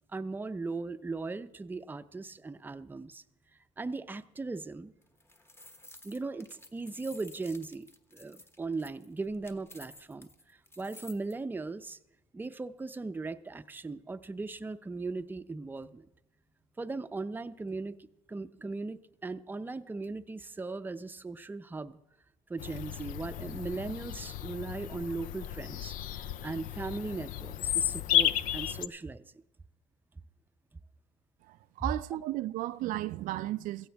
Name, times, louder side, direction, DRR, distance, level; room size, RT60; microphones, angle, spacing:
voice 1, 0.1-3.2 3.8-4.9 6.0-12.0 12.3-16.0 16.8-22.0 22.5-25.9 26.4-29.2, right 3 dB, 15° right, 0.5 m, -38 dB
sound 1, 5.0-11.3, left 1 dB, 15° left, 1.1 m, -53 dB
Bird vocalization bird call bird song, 22.6-28.9, left 11 dB, 75° left, 0.5 m, -33 dB
voice 2, 31.4-33.9, right 15 dB, 75° right, 0.4 m, -34 dB
16.0 x 15.5 x 3.4 m
cardioid pair, 95°, 14 cm